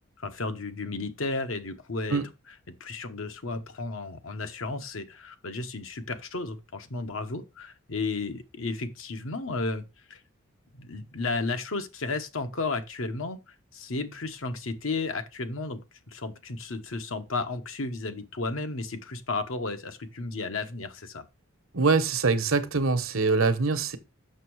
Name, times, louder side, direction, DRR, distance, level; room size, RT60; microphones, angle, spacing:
voice 1, 0.2-2.2 2.7-9.8 10.1-10.2 10.7-15.8 16.1-21.2, left 3 dB, 75° left, 1.0 m, -33 dB
voice 2, 21.7-24.0, right 4 dB, 75° right, 1.0 m, -24 dB
6.6 x 6.2 x 4.6 m
head